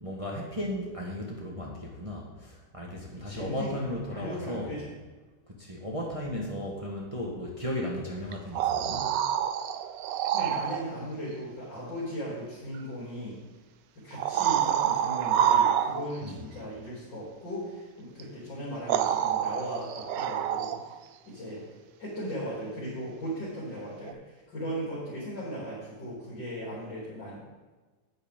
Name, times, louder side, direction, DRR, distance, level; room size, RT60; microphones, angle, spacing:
voice 1, 0.0-4.7 5.5-9.2 16.2-16.4, left 1 dB, 20° right, -2 dB, 1.2 m, -35 dB
voice 2, 3.1-3.8 4.1-4.9 10.1-13.4 13.9-20.8 21.3-21.6 22.0-27.4, equal, 90° left, -9 dB, 3.8 m, -37 dB
sound 1, 8.3-10.9 12.7-12.8 14.1-16.3 18.2-18.3 18.9-21.0 24.1-24.2, right 10 dB, 80° right, 1.2 m, -27 dB
9.9 x 9.5 x 3.7 m, 1.3 s
omnidirectional pair, 1.9 m